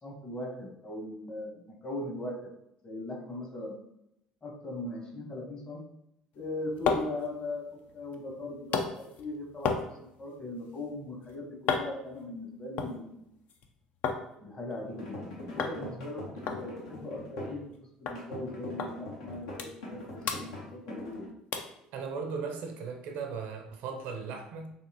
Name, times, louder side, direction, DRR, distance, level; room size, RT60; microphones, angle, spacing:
voice 1, 0.0-2.5 2.8-3.7 4.4-5.8 6.3-7.7 7.9-13.2 14.4-17.6 18.0-21.3, left 2 dB, 35° left, 1.2 m, -39 dB
sound 1, 6.3-14.2 14.5-15.2 15.6-15.8 16.1-16.2 16.5-17.8 18.1-18.2 18.8-18.9 19.3-20.0 20.2-21.1 21.5-21.8 22.3-22.4, left 5 dB, 55° left, 0.5 m, -35 dB
sound 2, 14.9-17.6 18.1-21.3, left 1 dB, 75° left, 0.8 m, -42 dB
voice 2, 21.9-24.7, right 5 dB, 60° right, 0.5 m, -37 dB
3.5 x 2.8 x 2.8 m
figure-of-eight pair, 60°, 3 cm